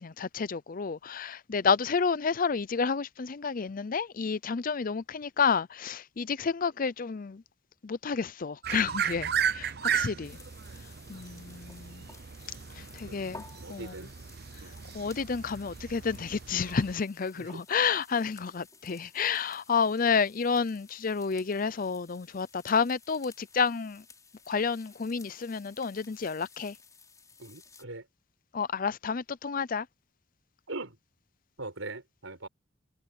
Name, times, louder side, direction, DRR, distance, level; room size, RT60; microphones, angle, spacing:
voice 1, 0.0-7.4 7.8-10.4 11.1-12.1 12.7-13.4 13.7-13.9 14.9-24.0 24.5-26.8 28.5-29.9, left 5 dB, 45° left, 0.5 m, -30 dB
sound 1, 8.6-16.9, right 8 dB, 50° right, 0.6 m, -35 dB
voice 2, 9.8-10.3 13.1-14.1 14.6-14.8 17.3-17.6 27.4-28.1 30.7-31.0 31.6-32.5, right 2 dB, 85° right, 4.5 m, -42 dB
sound 2, 10.2-27.8, left 4 dB, 15° left, 6.1 m, -55 dB
head